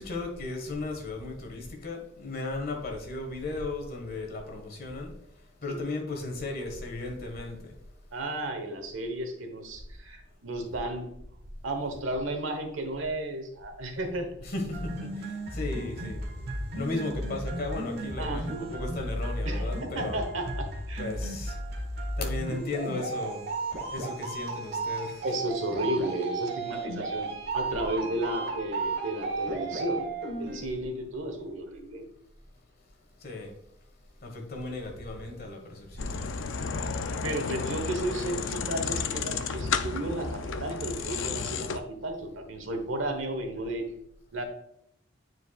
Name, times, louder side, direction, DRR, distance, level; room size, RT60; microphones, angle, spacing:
voice 1, 0.0-5.2 5.6-7.7 14.4-16.2 16.7-20.2 21.0-21.6 22.2-23.4 23.9-25.3 33.2-33.5 34.2-36.5, left 2 dB, 50° left, 1.5 m, -35 dB
voice 2, 8.1-11.1 11.6-14.3 18.2-18.7 19.4-21.1 25.2-30.1 30.4-32.0 37.2-43.8 44.3-44.4, right 1 dB, 90° right, 1.2 m, -33 dB
sound 1, 14.7-30.7, right 2 dB, 55° right, 1.6 m, -34 dB
sound 2, 36.0-41.8, left 5 dB, 70° left, 0.5 m, -32 dB
9.3 x 4.7 x 2.4 m
head